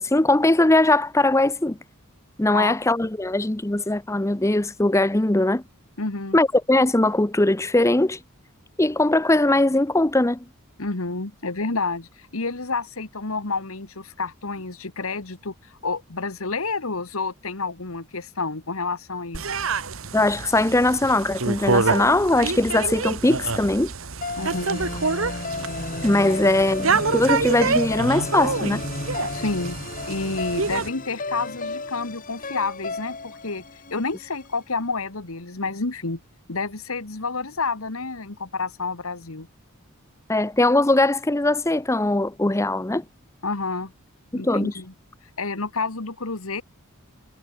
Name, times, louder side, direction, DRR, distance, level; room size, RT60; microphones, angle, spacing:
voice 1, 0.0-1.8 2.4-5.6 6.3-8.2 8.8-10.4 20.1-23.9 26.0-28.8 40.3-43.0 44.3-44.7, left 2 dB, 15° left, 0.7 m, -20 dB
voice 2, 6.0-6.4 10.8-19.4 24.4-24.8 29.3-29.8 30.1-33.6 33.9-36.2 36.5-39.5 43.4-43.9 44.3-44.9 45.4-46.6, left 3 dB, 70° left, 1.8 m, -29 dB
sound 1, 19.3-30.9, right 4 dB, 65° right, 1.7 m, -27 dB
sound 2, 24.2-34.5, left 2 dB, 40° left, 4.3 m, -33 dB
head